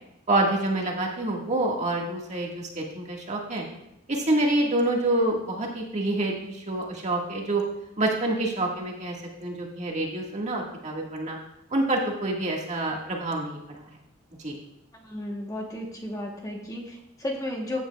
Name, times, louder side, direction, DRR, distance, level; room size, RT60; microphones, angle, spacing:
voice 1, 0.3-3.6 4.1-7.6 8.0-9.2 9.4-11.4 11.7-13.8 14.4-14.6, right 2 dB, 35° right, -1 dB, 1.8 m, -27 dB
voice 2, 15.0-17.8, left 1 dB, 15° left, 0 dB, 1.1 m, -33 dB
14.5 x 8.6 x 2.4 m, 0.82 s
head